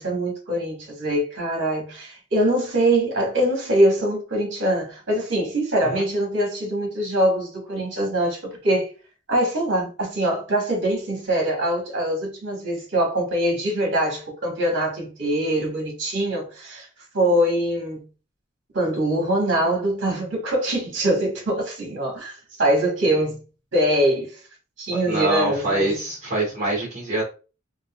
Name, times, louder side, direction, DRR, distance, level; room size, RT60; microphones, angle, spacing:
voice 1, 0.0-8.9 9.3-16.9 17.1-18.1 18.7-23.4 23.7-24.4 24.8-26.0, right 1 dB, 60° right, 1.2 m, -23 dB
voice 2, 25.0-27.2, right 1 dB, 40° right, 1.1 m, -25 dB
3.9 x 2.1 x 2.2 m
head